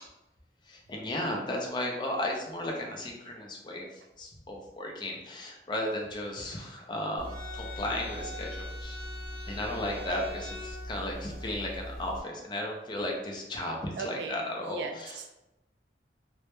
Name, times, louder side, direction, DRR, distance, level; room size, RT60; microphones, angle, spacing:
voice 1, 0.7-9.0 9.5-15.2, left 1 dB, 25° left, 0 dB, 0.4 m, -35 dB
sound 1, 7.2-12.2, equal, 55° right, 0.8 m, -40 dB
voice 2, 9.7-10.1 14.0-15.3, right 4 dB, 75° right, 4 dB, 0.3 m, -39 dB
2.1 x 2.0 x 3.0 m, 0.95 s
head